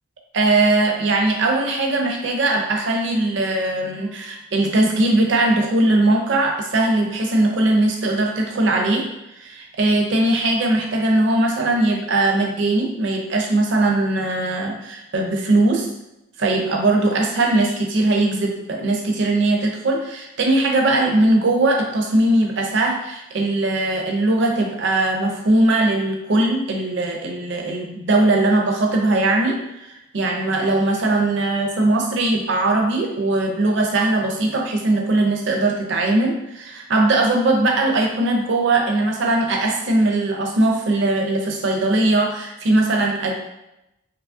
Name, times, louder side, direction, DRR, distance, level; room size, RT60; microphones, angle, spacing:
voice 1, 0.3-9.1 9.4-15.9 16.4-43.4, right 2 dB, 55° right, 1 dB, 0.4 m, -20 dB
2.8 x 2.3 x 2.4 m, 0.89 s
head